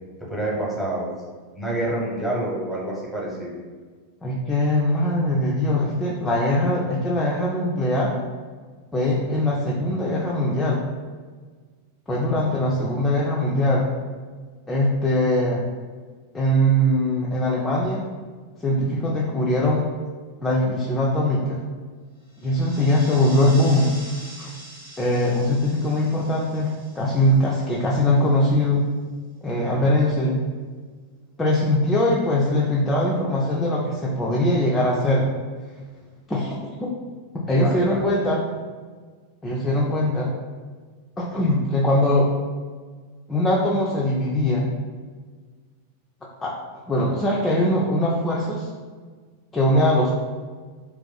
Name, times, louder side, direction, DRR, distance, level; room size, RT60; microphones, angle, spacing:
voice 1, 0.3-1.1 1.5-3.5 29.7-29.9 37.5-38.0, right 1 dB, 5° right, -5 dB, 1.0 m, -28 dB
voice 2, 4.2-8.2 8.9-10.8 12.1-13.9 14.7-15.6 16.3-18.0 18.6-19.9 20.4-21.6 22.4-23.9 24.4-24.5 25.0-28.8 29.4-30.4 31.4-35.3 36.3-36.9 37.3-38.4 39.4-40.3 41.2-42.3 43.3-44.7 46.4-46.5 46.9-48.7 49.5-50.1, left 1 dB, 15° left, -5 dB, 0.4 m, -21 dB
sound 1, 22.3-28.1, right 1 dB, 85° right, 1.3 m, -43 dB
2.5 x 2.3 x 3.9 m, 1.5 s
figure-of-eight pair, 90°, 0 cm